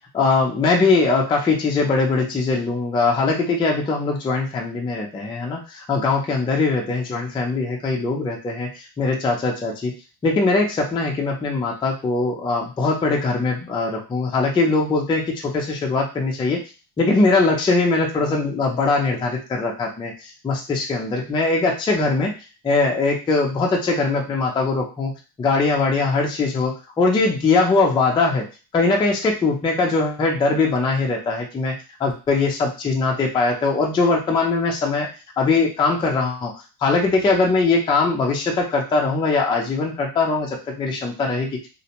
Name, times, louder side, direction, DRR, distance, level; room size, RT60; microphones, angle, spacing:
voice 1, 0.1-8.7 9.0-9.9 10.2-16.6 17.0-22.3 22.6-25.1 25.4-28.5 28.7-31.7 32.0-35.1 35.4-36.5 36.8-41.5, left 3 dB, 15° left, -1 dB, 0.3 m, -21 dB
2.5 x 2.0 x 2.8 m, 0.32 s
cardioid pair, 135°, 43 cm